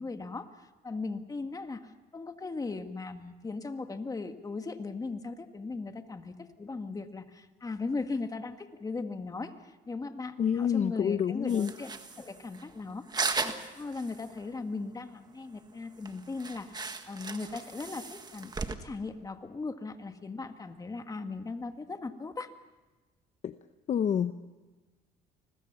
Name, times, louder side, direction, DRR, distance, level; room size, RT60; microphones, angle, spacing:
voice 1, 0.0-11.9 12.2-13.0 13.4-22.5, left 3 dB, 20° left, 7 dB, 1.9 m, -38 dB
voice 2, 10.4-11.7 23.4-23.6 23.9-24.3, left 8 dB, 45° left, 10 dB, 0.8 m, -27 dB
sound 1, 11.5-14.5 14.7-14.8 15.2-15.3 15.7-15.8 16.0-18.8, right 4 dB, 25° right, 1.7 m, -37 dB
29.5 x 21.0 x 5.9 m, 1.2 s
cardioid pair, 110°, 17 cm